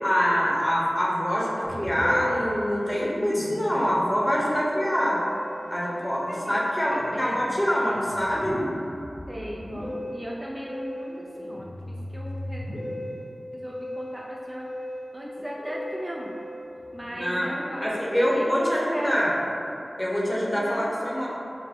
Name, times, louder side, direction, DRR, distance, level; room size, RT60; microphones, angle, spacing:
voice 1, 0.0-5.2 5.7-8.6 17.2-17.5 17.8-19.4 20.0-21.3, equal, 20° left, -5 dB, 0.9 m, -25 dB
Musical instrument, 1.6-19.2, left 1 dB, 65° left, 0.7 m, -38 dB
voice 2, 4.5-4.9 5.8-5.9 6.3-6.6 6.9-7.4 9.3-12.6 13.5-14.7 15.1-16.4 16.9-19.1 20.5-21.0, equal, 20° right, -4 dB, 0.4 m, -37 dB
5.8 x 2.1 x 3.6 m, 2.9 s
wide cardioid pair, 55°, 0 cm